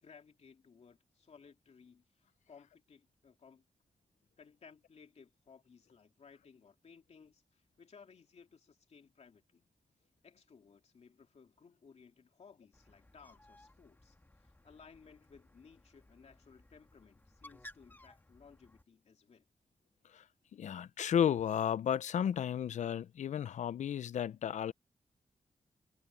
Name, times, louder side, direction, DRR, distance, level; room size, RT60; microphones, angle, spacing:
voice 1, 0.0-3.6 4.4-9.6 10.2-19.5, left 5 dB, 65° left, 2.6 m, -60 dB
Bird, 12.7-18.8, left 1 dB, 15° left, 1.8 m, -59 dB
voice 2, 20.5-24.7, left 9 dB, 90° left, 0.5 m, -33 dB
cardioid pair, 85°, 12 cm